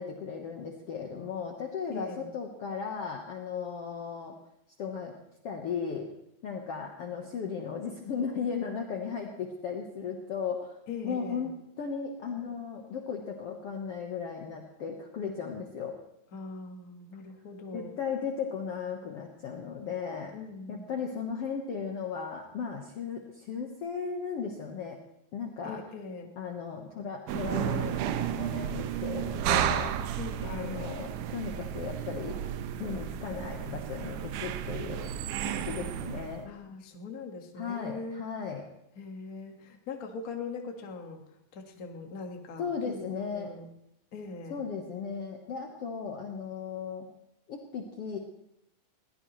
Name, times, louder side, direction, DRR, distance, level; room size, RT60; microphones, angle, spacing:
voice 1, 0.0-4.3 4.8-5.2 5.4-6.1 6.4-10.8 11.0-16.0 17.7-20.3 20.7-25.0 25.3-25.8 26.4-30.0 30.4-32.4 32.8-36.5 37.5-38.6 42.6-43.5 44.5-47.1 47.5-48.2, left 6 dB, 90° left, 2 dB, 1.3 m, -36 dB
voice 2, 1.9-2.3 10.9-11.5 16.3-17.9 20.3-20.9 25.6-26.3 30.2-30.8 35.6-36.1 36.4-38.2 38.9-41.2 41.5-43.7 44.1-44.6, left 4 dB, 60° left, 2 dB, 0.8 m, -41 dB
sound 1, 27.3-36.4, right 10 dB, 80° right, 1.9 m, -33 dB
21.5 x 16.5 x 3.1 m, 0.82 s
omnidirectional pair, 4.4 m